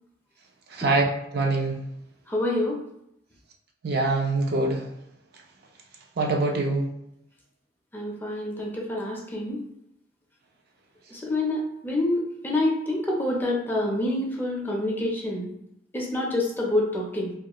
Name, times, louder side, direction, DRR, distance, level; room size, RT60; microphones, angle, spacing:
voice 1, 0.7-1.1 1.3-1.8 3.8-4.8 6.2-6.9, right 2 dB, 55° right, 0 dB, 0.4 m, -24 dB
voice 2, 2.3-2.8 7.9-9.6 11.1-15.5 15.9-17.3, left 1 dB, 10° left, -2 dB, 0.4 m, -27 dB
2.4 x 2.3 x 2.9 m, 0.78 s
head